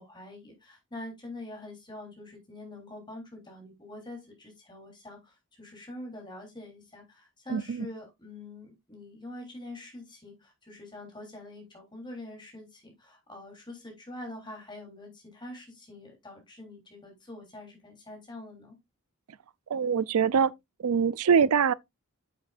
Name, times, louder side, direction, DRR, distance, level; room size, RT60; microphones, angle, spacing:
voice 1, 0.0-18.8, left 1 dB, 20° left, 3.5 m, -45 dB
voice 2, 7.5-7.9 19.7-20.5 20.8-21.7, right 6 dB, 85° right, 0.4 m, -24 dB
9.1 x 7.5 x 2.5 m
head